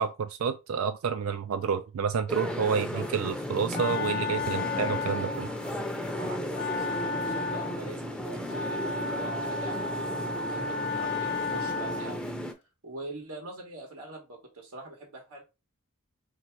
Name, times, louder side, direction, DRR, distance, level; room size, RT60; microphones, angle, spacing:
voice 1, 0.0-5.5, right 6 dB, 70° right, 0.4 m, -29 dB
sound 1, 2.3-12.5, left 1 dB, 5° left, 0.6 m, -35 dB
voice 2, 2.7-3.0 5.6-12.4 12.8-15.4, right 2 dB, 90° right, 1.4 m, -43 dB
Wind instrument woodwind instrument, 3.2-12.3, left 3 dB, 55° left, 0.5 m, -34 dB
3.4 x 2.9 x 4.5 m
head